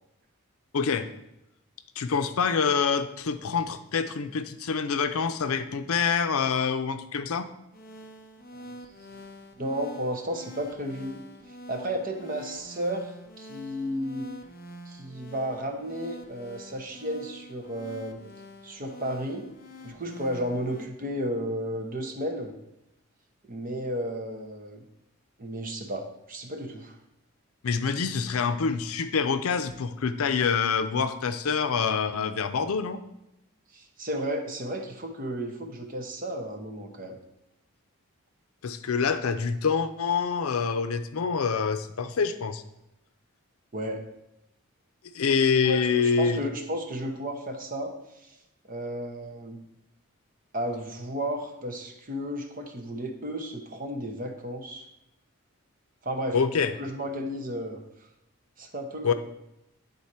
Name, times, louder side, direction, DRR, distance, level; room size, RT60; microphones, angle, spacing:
voice 1, 0.7-1.1 2.0-7.5 27.6-33.0 38.6-42.6 45.1-46.4 56.3-56.7 59.0-59.1, left 5 dB, 80° left, 10 dB, 0.5 m, -26 dB
sound 1, 7.7-20.9, equal, 40° left, 0.7 m, -46 dB
voice 2, 9.6-11.2 11.7-14.3 14.9-18.2 18.6-19.5 19.8-22.5 23.4-24.8 25.4-27.0 33.7-37.2 43.7-44.1 45.6-48.4 48.7-49.7 50.5-54.9 56.0-56.4 56.8-57.8 58.6-59.1, equal, 40° right, 4 dB, 0.8 m, -33 dB
9.6 x 4.0 x 4.3 m, 0.87 s
head